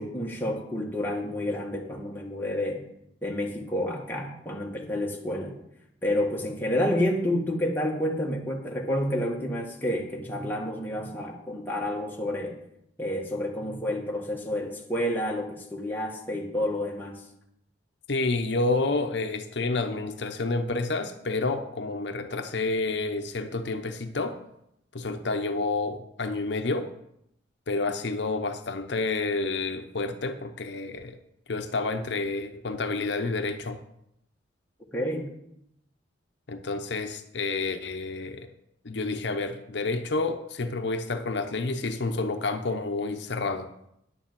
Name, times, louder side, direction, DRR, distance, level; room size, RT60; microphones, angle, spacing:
voice 1, 0.0-2.8 3.2-5.6 6.0-12.6 13.0-17.2 34.9-35.3, left 1 dB, 10° left, -1 dB, 1.7 m, -29 dB
voice 2, 18.1-24.4 24.9-26.9 27.7-31.2 31.5-33.8 36.5-38.5 38.8-43.7, left 3 dB, 70° left, 7 dB, 0.8 m, -29 dB
10.5 x 7.0 x 7.4 m, 0.78 s
head